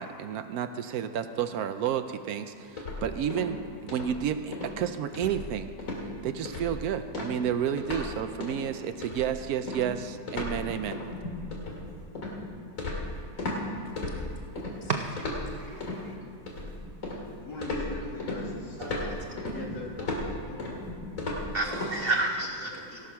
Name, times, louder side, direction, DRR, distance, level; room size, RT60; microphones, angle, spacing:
voice 1, 0.0-5.7 6.2-11.0, right 9 dB, 70° right, 10 dB, 1.0 m, -31 dB
sound 1, 2.8-3.6 3.9-4.2 4.5-4.8 5.1-5.5 5.8-6.1 6.5-6.8 7.1-8.1 8.4-8.6 9.0-13.6 14.0-14.7 15.2-16.0 16.5-17.3 17.6-21.9, left 2 dB, 55° left, 2.3 m, -35 dB
voice 2, 14.9-16.1 18.8-19.0 21.5-23.0, right 3 dB, 90° right, 4 dB, 0.5 m, -31 dB
voice 3, 17.1-20.7 21.5-23.1, left 2 dB, 90° left, -2 dB, 2.6 m, -42 dB
17.5 x 6.4 x 5.7 m, 2.8 s
omnidirectional pair, 1.8 m